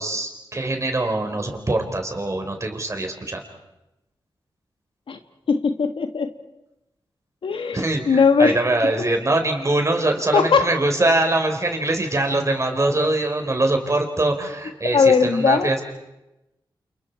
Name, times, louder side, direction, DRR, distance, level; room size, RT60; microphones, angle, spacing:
voice 1, 0.0-3.4 7.7-15.8, right 2 dB, 35° right, 4 dB, 4.6 m, -23 dB
voice 2, 5.5-6.3 7.4-8.6 10.3-10.7 14.9-15.7, left 5 dB, 80° left, 7 dB, 1.6 m, -19 dB
29.0 x 29.0 x 4.8 m, 0.95 s
cardioid pair, 65°, 9 cm